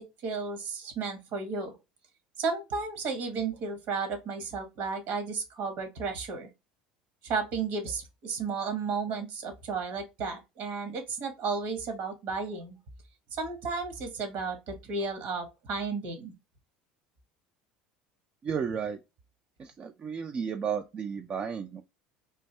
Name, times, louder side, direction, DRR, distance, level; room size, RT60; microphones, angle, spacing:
voice 1, 0.2-1.7 2.4-6.5 7.2-12.8 13.3-16.3, right 4 dB, 65° right, 1.4 m, -33 dB
voice 2, 18.4-19.0 19.8-21.8, right 7 dB, 35° right, 0.4 m, -33 dB
3.3 x 2.6 x 3.1 m
hypercardioid pair, 75°, 4 cm